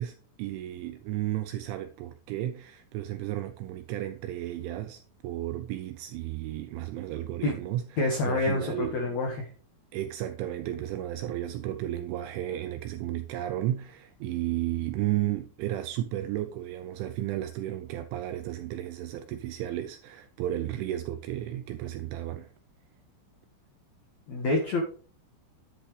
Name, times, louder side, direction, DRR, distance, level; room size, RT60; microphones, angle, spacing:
voice 1, 0.0-9.0 9.9-22.5, right 13 dB, 80° right, 2.8 m, -33 dB
voice 2, 8.0-9.5 24.3-24.8, left 2 dB, 80° left, 1.6 m, -27 dB
10.5 x 10.0 x 3.2 m
omnidirectional pair, 5.9 m